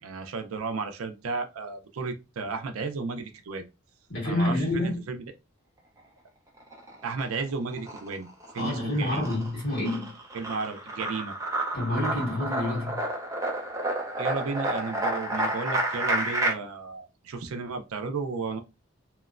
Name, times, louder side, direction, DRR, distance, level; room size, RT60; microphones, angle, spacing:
voice 1, 0.0-3.7 4.2-5.2 7.0-9.3 10.3-11.4 14.2-18.6, right 4 dB, 85° right, 0.4 m, -33 dB
voice 2, 4.1-5.0 8.6-10.2 11.7-13.0, left 1 dB, 50° left, 1.5 m, -28 dB
sound 1, 6.6-7.4 7.7-16.5, right 1 dB, 15° right, 0.5 m, -30 dB
2.9 x 2.0 x 2.4 m
head